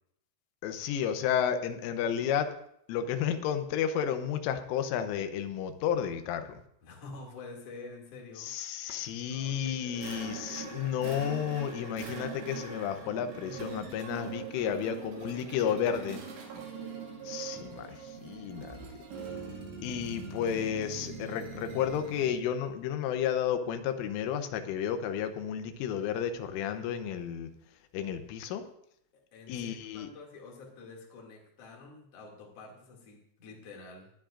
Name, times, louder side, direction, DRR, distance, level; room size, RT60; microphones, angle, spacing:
voice 1, 0.6-2.5 2.9-6.6 8.4-16.2 17.3-18.8 19.8-27.5 27.9-28.6 29.5-30.1, left 9 dB, 90° left, 8 dB, 3.5 m, -32 dB
voice 2, 6.8-8.5 9.3-11.1 13.4-13.6 14.5-14.9 15.2-16.1 29.1-34.1, left 3 dB, 40° left, -1 dB, 2.8 m, -49 dB
sound 1, 10.0-22.5, right 5 dB, 80° right, 4.6 m, -42 dB
20.5 x 12.5 x 2.5 m, 0.70 s
omnidirectional pair, 5.6 m